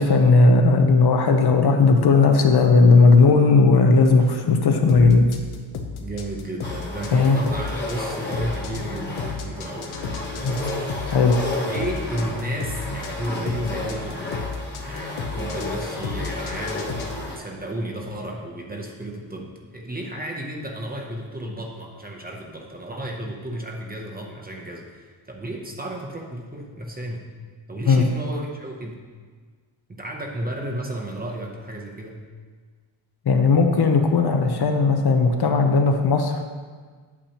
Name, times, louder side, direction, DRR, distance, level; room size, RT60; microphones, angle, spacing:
voice 1, 0.0-5.3 7.1-7.4 10.4-10.6 11.1-11.4 27.9-28.1 33.3-36.4, left 4 dB, 50° left, 4 dB, 0.7 m, -16 dB
sound 1, 4.9-17.2, left 5 dB, 80° left, 0.9 m, -33 dB
voice 2, 6.0-10.0 10.3-10.9 11.7-14.5 14.8-27.3 27.7-29.0 29.9-32.2, right 1 dB, 20° right, 0 dB, 0.7 m, -33 dB
sound 2, 6.6-17.4, left 2 dB, 20° left, 1.1 m, -32 dB
8.5 x 8.2 x 2.9 m, 1.5 s
wide cardioid pair, 170°, 49 cm